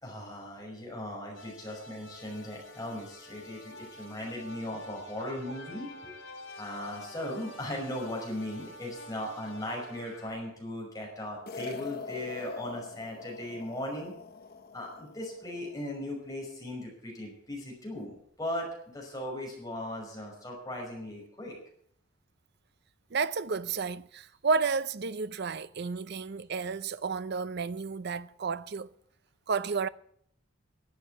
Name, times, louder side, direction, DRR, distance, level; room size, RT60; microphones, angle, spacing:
voice 1, 0.0-6.1 6.6-14.1 14.7-21.6, left 1 dB, 20° left, 5.5 m, -38 dB
sound 1, 1.3-10.3, left 1 dB, 75° left, 3.6 m, -48 dB
sound 2, 11.5-15.9, left 4 dB, 50° left, 0.9 m, -44 dB
voice 2, 23.1-28.9 29.5-29.9, right 5 dB, 55° right, 0.6 m, -31 dB
11.5 x 9.1 x 9.5 m
head